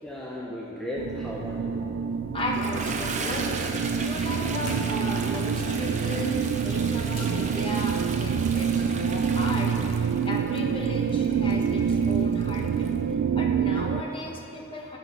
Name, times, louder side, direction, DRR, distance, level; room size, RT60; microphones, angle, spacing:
voice 1, 0.0-1.8 3.9-4.4, left 1 dB, 5° left, -5 dB, 0.6 m, -36 dB
sound 1, 1.0-14.0, right 6 dB, 80° right, 0.3 m, -27 dB
voice 2, 2.3-3.5 4.0-12.9 13.3-15.0, left 1 dB, 25° left, 0 dB, 1.1 m, -36 dB
Toilet flush, 2.4-13.0, right 4 dB, 35° right, 0.6 m, -36 dB
sound 2, 2.8-4.1 4.4-5.0 5.3-8.0, left 1 dB, 45° left, 2.3 m, -42 dB
14.5 x 5.0 x 5.3 m, 3.0 s
head